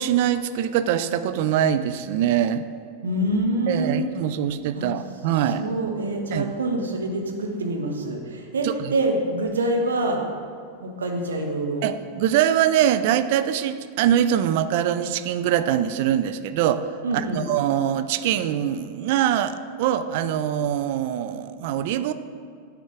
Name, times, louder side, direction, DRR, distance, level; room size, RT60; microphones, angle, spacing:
voice 1, 0.0-2.7 3.7-5.6 6.3-6.5 8.6-8.9 11.8-16.9 17.1-22.1, right 10 dB, 50° right, 11 dB, 0.3 m, -23 dB
voice 2, 3.0-4.0 4.8-4.9 5.6-10.2 10.8-11.9 17.0-17.5, right 1 dB, 70° right, 2 dB, 0.9 m, -26 dB
9.1 x 3.5 x 4.9 m, 2.2 s
figure-of-eight pair, 90°, 0 cm